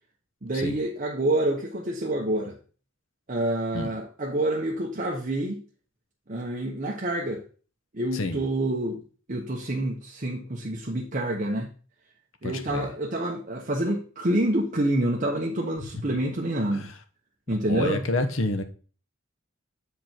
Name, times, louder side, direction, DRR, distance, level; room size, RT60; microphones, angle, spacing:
voice 1, 0.4-2.6 3.3-5.6 6.3-7.4 7.9-9.0 9.3-11.7 12.4-16.9 17.5-18.0, right 1 dB, 40° right, 1.1 m, -27 dB
voice 2, 12.4-12.9 17.7-18.6, left 2 dB, 75° left, 1.1 m, -28 dB
7.8 x 5.2 x 4.4 m
head